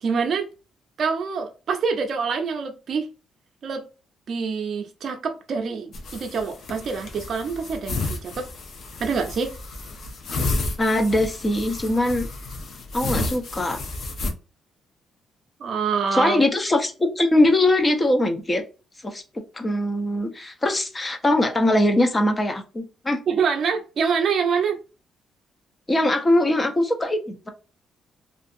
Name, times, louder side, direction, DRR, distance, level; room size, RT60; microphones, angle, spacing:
voice 1, 0.0-0.5 1.0-3.1 3.6-3.8 4.3-8.5 9.0-9.5 15.6-16.4 23.3-24.8, right 5 dB, 55° right, 0.5 m, -25 dB
sound 1, 5.9-14.3, left 2 dB, 60° left, 0.7 m, -31 dB
voice 2, 10.8-12.3 12.9-13.8 16.1-18.6 19.0-19.2 19.5-23.2 25.9-27.5, left 1 dB, 20° left, 0.6 m, -21 dB
2.5 x 2.4 x 2.5 m
cardioid pair, 90°, 0 cm